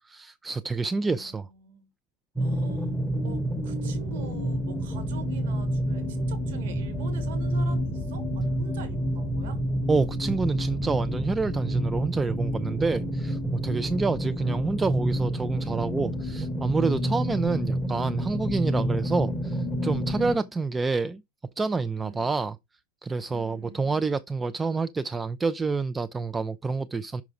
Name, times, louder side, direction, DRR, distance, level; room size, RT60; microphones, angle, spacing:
voice 1, 0.0-1.5 6.0-6.2 9.9-21.2 21.6-22.5 23.0-27.2, right 4 dB, 15° right, 0.3 m, -28 dB
voice 2, 1.0-1.9 2.4-2.9 3.2-9.6 13.8-14.1 20.1-20.5 21.9-22.4 23.3-24.0, right 4 dB, 55° right, 2.1 m, -45 dB
sound 1, 2.4-20.4, equal, 5° left, 1.0 m, -29 dB
5.8 x 5.6 x 4.9 m
figure-of-eight pair, 90°, 0 cm